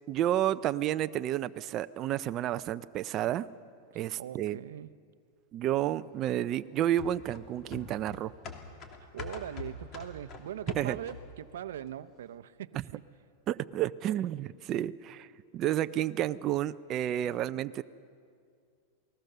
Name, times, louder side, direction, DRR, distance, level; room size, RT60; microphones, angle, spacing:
voice 1, 0.1-3.5 3.9-4.6 5.5-8.3 10.7-11.0 13.5-17.8, right 12 dB, 35° right, 12 dB, 0.5 m, -31 dB
voice 2, 3.9-4.9 9.0-13.0, right 10 dB, 85° right, 14 dB, 0.7 m, -41 dB
sound 1, 7.0-11.4 11.8-11.9, left 3 dB, 35° left, 2.8 m, -44 dB
28.5 x 20.0 x 6.7 m, 2.2 s
supercardioid pair, 140°, 0 cm